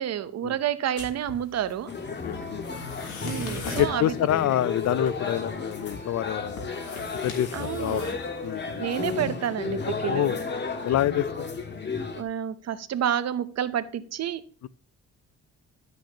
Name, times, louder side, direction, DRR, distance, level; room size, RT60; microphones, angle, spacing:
voice 1, 0.0-1.9 3.2-4.1 7.5-8.2 8.8-10.3 12.1-14.4, right 10 dB, 60° right, 0.8 m, -29 dB
sound 1, 1.0-9.2, left 3 dB, 80° left, 3.1 m, -42 dB
sound 2, 1.9-12.2, left 4 dB, 35° left, 1.6 m, -33 dB
voice 2, 2.2-2.7 3.8-6.7 7.2-8.6 10.1-10.4 10.8-11.4 14.6-14.7, left 12 dB, 60° left, 0.5 m, -27 dB
12.0 x 8.0 x 2.9 m
cardioid pair, 90°, 30 cm